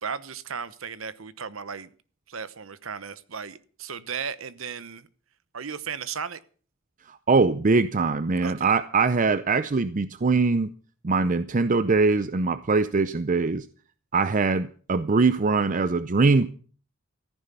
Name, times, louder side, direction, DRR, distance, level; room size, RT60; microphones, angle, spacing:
voice 1, 0.0-1.9 2.3-5.1 5.5-6.4 8.4-8.7, right 6 dB, 85° right, 15 dB, 1.0 m, -35 dB
voice 2, 7.1-10.7 11.0-13.6 14.1-16.5, right 4 dB, 40° right, 13 dB, 0.6 m, -22 dB
14.5 x 10.0 x 6.9 m, 0.42 s
head